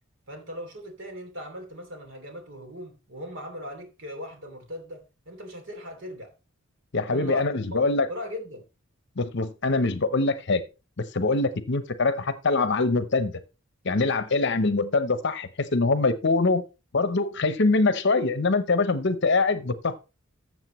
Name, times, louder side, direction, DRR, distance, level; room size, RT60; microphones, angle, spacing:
voice 1, 0.3-6.3 7.1-7.8 8.1-8.6, equal, 60° right, 2.9 m, -39 dB
voice 2, 6.9-8.1 9.2-10.6 11.1-13.3 13.8-16.6 16.9-19.9, left 3 dB, 60° left, 0.8 m, -23 dB
13.5 x 7.5 x 3.1 m
head